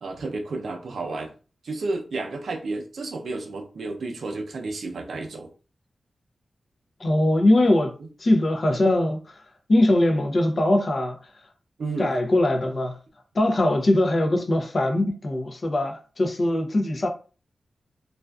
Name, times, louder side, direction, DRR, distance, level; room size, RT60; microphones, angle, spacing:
voice 1, 0.0-1.3 1.6-5.5 11.8-12.1, right 3 dB, 80° right, 0.5 m, -31 dB
voice 2, 7.0-7.9 8.2-9.4 9.7-11.2 12.0-13.0 13.3-17.1, left 1 dB, 45° left, 0.5 m, -21 dB
2.4 x 2.3 x 2.2 m
wide cardioid pair, 120°, 0 cm